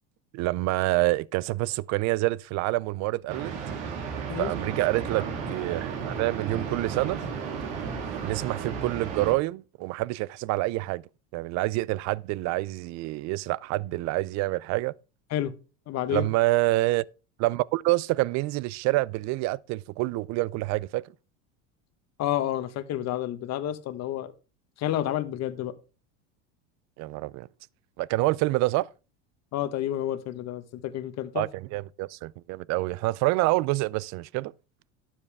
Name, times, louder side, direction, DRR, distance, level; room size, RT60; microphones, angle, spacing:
voice 1, 0.3-3.5 4.4-7.2 8.2-11.0 11.3-14.9 16.1-17.0 17.4-21.1 27.0-27.5 28.0-28.9 31.3-34.5, right 19 dB, 50° right, 0.5 m, -27 dB
sound 1, 3.3-9.3, right 6 dB, 80° right, 2.7 m, -33 dB
voice 2, 15.9-16.3 22.2-24.3 24.8-25.7 29.5-31.4, left 12 dB, 45° left, 1.3 m, -30 dB
12.0 x 7.3 x 3.4 m
supercardioid pair, 115°, 36 cm